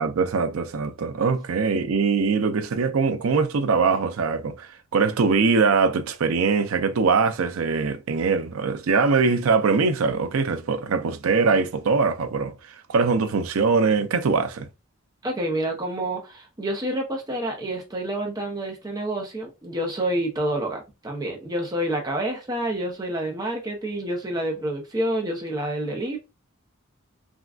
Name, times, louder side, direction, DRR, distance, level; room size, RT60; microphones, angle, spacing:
voice 1, 0.0-12.5 12.9-14.7, right 4 dB, 75° right, 0.4 m, -22 dB
voice 2, 15.2-26.2, right 1 dB, 15° right, 0.6 m, -28 dB
3.5 x 2.2 x 2.4 m
head